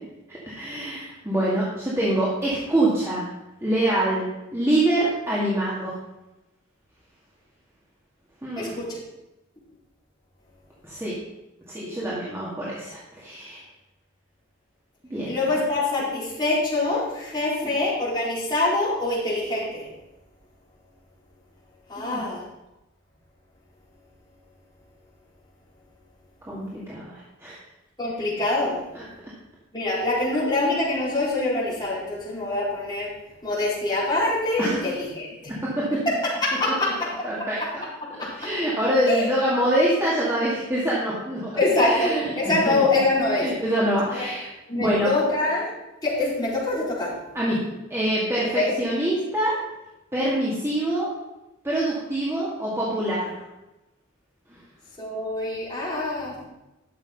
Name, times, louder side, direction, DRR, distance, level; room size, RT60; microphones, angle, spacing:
voice 1, 0.3-3.2 3.6-4.2 4.5-6.0 8.4-8.7 10.8-11.2 11.7-13.6 15.1-15.3 17.6-17.7 22.0-22.2 26.5-27.6 28.9-29.0 34.6-34.9 35.5-35.9 37.2-37.8 38.4-41.5 41.9-42.8 43.4-44.5 44.7-45.1 47.3-47.6 47.9-49.5 50.1-51.1 51.6-53.3 54.5-54.6, right 1 dB, 15° right, -8 dB, 2.2 m, -25 dB
voice 2, 8.6-9.0 15.2-19.9 21.9-22.4 28.0-28.8 29.7-33.1 33.4-35.5 36.0-37.5 38.2-38.5 39.1-39.3 41.6-43.5 44.2-44.3 44.7-45.7 46.0-47.1 48.5-48.7 55.0-56.4, left 2 dB, 20° left, -9 dB, 4.8 m, -25 dB
12.0 x 7.2 x 5.4 m, 0.97 s
head